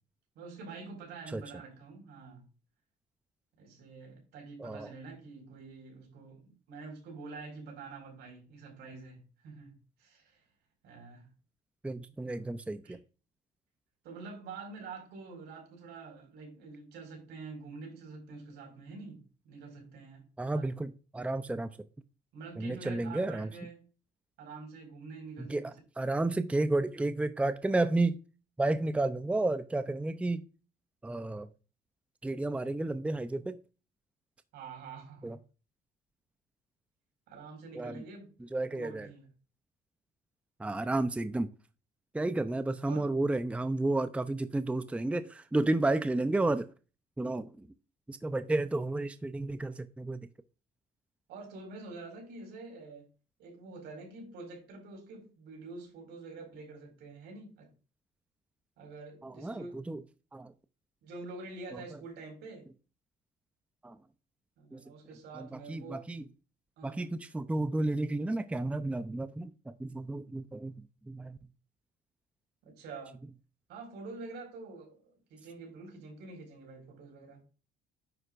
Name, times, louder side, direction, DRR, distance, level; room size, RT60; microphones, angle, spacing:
voice 1, 0.3-2.5 3.6-10.4 10.8-11.3 12.3-12.5 12.8-13.0 14.0-20.2 20.5-20.7 22.3-23.8 24.4-25.7 34.5-35.4 37.3-38.4 38.6-39.3 42.9-43.1 51.3-53.1 53.4-57.7 58.8-59.7 61.0-62.7 64.6-66.0 66.8-67.1 72.6-73.2 73.7-77.4, right 4 dB, 80° right, 5.1 m, -47 dB
voice 2, 4.6-4.9 11.8-13.0 20.4-21.7 22.6-23.5 25.4-28.2 28.6-30.4 31.0-31.5 32.2-33.6 35.2-35.4 37.7-37.9 38.5-39.1 40.6-41.5 42.1-46.7 47.2-47.7 48.1-50.2 59.2-60.0 60.3-60.5 63.8-64.0 64.7-64.8 65.3-66.2 66.8-71.4, right 2 dB, 5° right, 0.6 m, -32 dB
9.9 x 7.8 x 2.5 m
cardioid pair, 110°, 17 cm